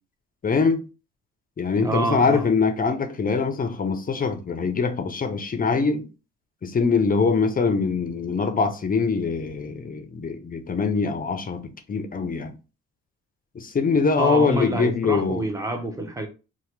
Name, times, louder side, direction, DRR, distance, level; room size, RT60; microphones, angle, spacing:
voice 1, 0.4-0.8 1.6-6.0 6.6-12.5 13.6-15.4, left 4 dB, 30° left, 0.5 m, -23 dB
voice 2, 1.8-2.4 14.2-16.3, right 1 dB, 10° right, 0.7 m, -27 dB
2.8 x 2.1 x 3.2 m
cardioid pair, 90°, 30 cm